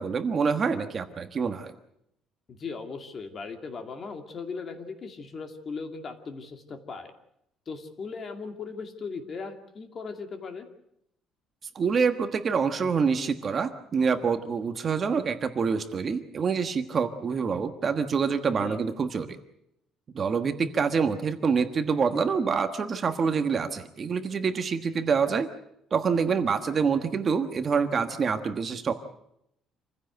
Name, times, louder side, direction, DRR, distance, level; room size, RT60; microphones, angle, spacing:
voice 1, 0.0-1.7 11.7-19.4 20.1-25.5 25.9-28.9, right 5 dB, 30° right, 8 dB, 1.3 m, -26 dB
voice 2, 2.5-7.1 7.7-10.7 18.6-18.8, left 4 dB, 30° left, 6 dB, 2.4 m, -38 dB
27.0 x 16.0 x 8.0 m, 0.77 s
cardioid pair, 170°, 0 cm